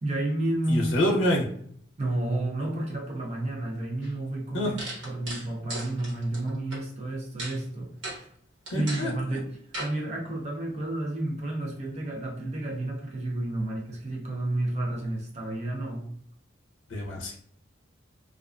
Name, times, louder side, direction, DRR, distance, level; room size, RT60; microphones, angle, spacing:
voice 1, 0.0-1.0 2.0-8.3 8.7-9.5 9.8-16.1, right 1 dB, 35° right, -1 dB, 0.5 m, -31 dB
voice 2, 0.7-1.5 4.5-4.8 8.7-9.4 16.9-17.4, left 1 dB, 85° left, 0 dB, 0.5 m, -27 dB
sound 1, 4.0-4.1 4.8-6.8 7.4-7.6 8.0-8.2 8.7-9.1 9.7-9.9, right 1 dB, 90° right, 1.1 m, -36 dB
2.4 x 2.2 x 2.3 m, 0.65 s
head